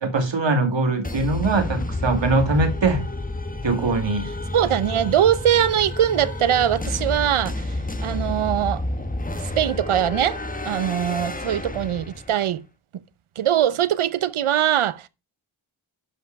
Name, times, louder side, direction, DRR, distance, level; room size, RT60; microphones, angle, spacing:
voice 1, 0.0-3.0 3.6-4.3, right 3 dB, 65° right, 2.4 m, -22 dB
sound 1, 1.0-12.4, left 2 dB, 15° left, 1.3 m, -30 dB
voice 2, 4.5-7.7 8.0-9.1 9.4-12.6 13.4-15.1, right 10 dB, 90° right, 0.8 m, -22 dB
11.5 x 5.4 x 4.7 m
wide cardioid pair, 80°, 48 cm